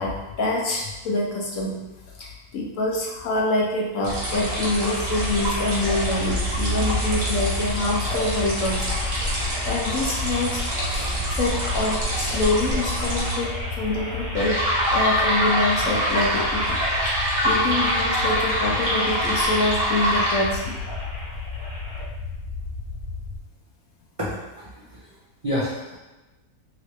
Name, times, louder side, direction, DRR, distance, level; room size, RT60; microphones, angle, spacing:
voice 1, 0.0-1.9 2.2-20.7, left 2 dB, 70° left, -2 dB, 0.8 m, -26 dB
mini waterfall prefx postfx, 4.0-13.3 14.3-20.4, right 1 dB, 40° right, 0.8 m, -25 dB
sound 1, 4.3-22.0, equal, 5° left, 0.7 m, -35 dB
sound 2, 6.0-23.4, left 3 dB, 90° left, 1.2 m, -34 dB
voice 2, 24.2-25.0 25.4-26.0, left 1 dB, 60° right, -9 dB, 0.3 m, -29 dB
2.9 x 2.9 x 3.1 m, 1.1 s
omnidirectional pair, 1.6 m